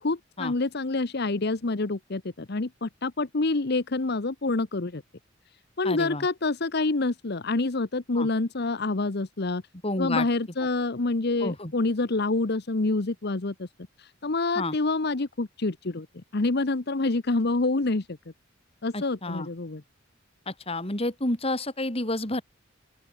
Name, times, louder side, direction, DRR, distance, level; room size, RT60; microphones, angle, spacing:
voice 1, 0.0-5.0 5.8-9.6 10.0-13.7 14.0-16.1 16.3-18.1 18.8-19.8, left 3 dB, 55° left, 1.0 m, -27 dB
voice 2, 5.8-6.3 8.1-8.3 9.8-10.3 11.4-11.7 14.6-14.8 18.9-19.5 20.5-22.4, left 2 dB, 30° left, 3.7 m, -30 dB
open air
head